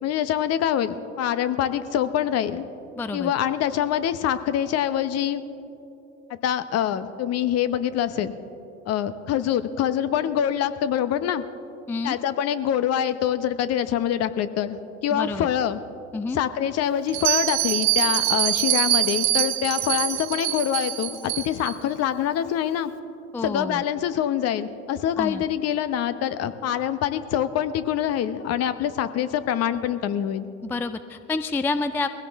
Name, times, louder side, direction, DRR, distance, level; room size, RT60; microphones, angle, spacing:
voice 1, 0.0-2.7 3.1-5.4 6.3-8.3 8.9-11.4 12.0-14.8 15.0-15.8 16.3-22.9 23.4-30.5, left 10 dB, 40° left, 12 dB, 0.9 m, -25 dB
voice 2, 3.0-3.3 11.9-12.2 15.1-15.5 16.1-16.4 23.3-23.8 25.2-25.4 30.6-32.1, left 3 dB, 5° left, 11 dB, 0.3 m, -28 dB
Bell, 17.1-21.7, right 13 dB, 45° right, 1.3 m, -24 dB
20.5 x 16.5 x 3.6 m, 2.9 s
hypercardioid pair, 90°, 37 cm